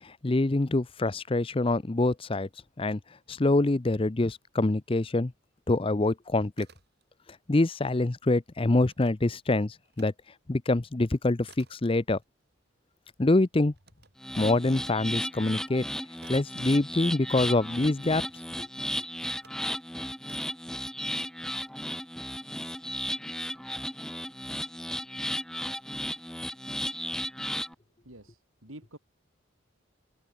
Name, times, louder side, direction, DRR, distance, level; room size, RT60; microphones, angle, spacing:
voice 1, 0.0-2.5 2.8-3.0 3.3-5.3 5.7-6.7 7.5-10.1 10.5-12.2 13.2-13.7 14.4-15.8 16.3-18.2 18.6-18.7, left 2 dB, 25° left, 0.6 m, -25 dB
sound 1, 6.5-7.4 7.7-10.1 10.5-17.6 18.2-19.7 20.2-20.7, right 4 dB, 50° right, 7.8 m, -59 dB
sound 2, 14.2-27.7, left 1 dB, 5° left, 1.6 m, -35 dB
voice 2, 28.0-29.0, right 1 dB, 80° right, 6.2 m, -49 dB
open air
head